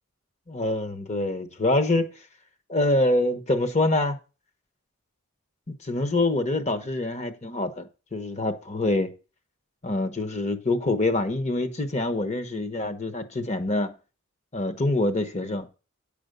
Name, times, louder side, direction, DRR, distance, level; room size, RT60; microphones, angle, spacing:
voice 1, 0.5-2.1 2.7-4.2 5.8-7.8 8.1-9.1 9.8-13.9 14.5-15.7, left 2 dB, 30° left, 1.0 m, -25 dB
9.9 x 5.1 x 6.7 m
head